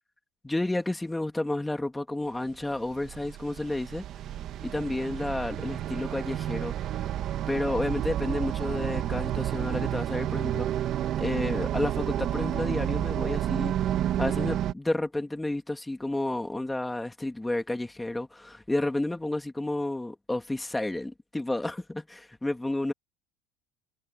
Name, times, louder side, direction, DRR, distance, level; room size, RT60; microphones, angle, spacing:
voice 1, 0.4-4.0 4.6-6.7 7.5-10.7 11.2-13.7 14.2-22.9, left 2 dB, 5° left, 2.7 m, -31 dB
sound 1, 2.6-14.7, right 11 dB, 45° right, 1.8 m, -30 dB
cardioid pair, 140°, 0 cm